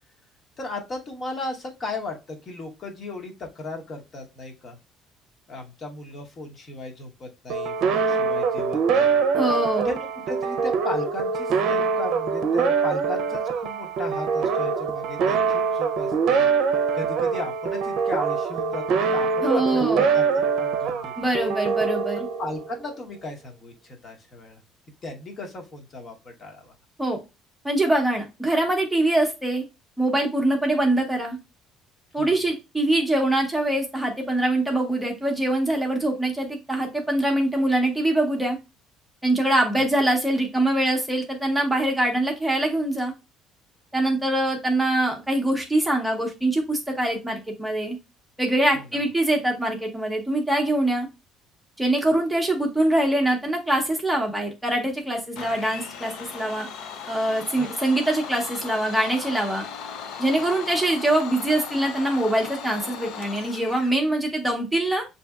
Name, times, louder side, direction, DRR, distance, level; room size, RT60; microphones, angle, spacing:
voice 1, 0.6-4.8 5.5-9.2 9.7-16.4 16.9-20.2 20.6-21.1 22.4-24.6 25.0-26.7 32.2-32.4 39.8-39.9 48.8-48.9 57.6-57.7, left 2 dB, 35° left, 2 dB, 1.0 m, -36 dB
sound 1, 7.5-22.9, right 5 dB, 65° right, 0.6 m, -24 dB
voice 2, 9.3-9.9 19.4-20.0 21.2-22.3 27.0-27.2 27.6-29.7 30.0-31.4 32.1-38.6 39.2-43.1 43.9-48.0 48.4-51.1 51.8-56.7 57.1-59.7 60.2-65.0, right 1 dB, 5° right, 1 dB, 0.8 m, -23 dB
Domestic sounds home sounds, 55.3-64.0, left 6 dB, 75° left, 0.6 m, -37 dB
6.6 x 2.7 x 2.3 m, 0.26 s
cardioid pair, 135°, 0 cm